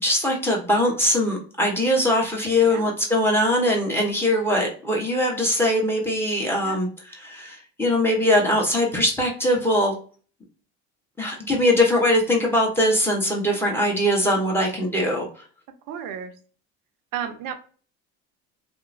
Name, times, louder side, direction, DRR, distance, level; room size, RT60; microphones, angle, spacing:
voice 1, 0.0-9.9 11.2-15.3, left 1 dB, 5° left, -1 dB, 1.2 m, -21 dB
voice 2, 15.9-16.3 17.1-17.5, right 8 dB, 65° right, 7 dB, 0.7 m, -33 dB
2.9 x 2.1 x 2.5 m, 0.40 s
supercardioid pair, 80°, 35 cm